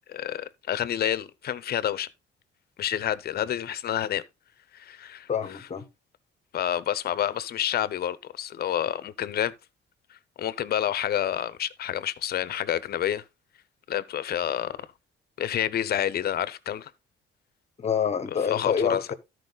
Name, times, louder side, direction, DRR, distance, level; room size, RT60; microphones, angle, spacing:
voice 1, 0.1-2.1 2.8-4.2 4.7-5.3 6.5-9.5 10.4-13.2 13.9-14.9 15.4-16.9 18.5-19.0, left 10 dB, 50° left, 0.8 m, -28 dB
voice 2, 5.3-5.8 17.8-19.1, left 7 dB, 35° left, 1.2 m, -27 dB
13.0 x 4.7 x 4.0 m
cardioid pair, 135°, 20 cm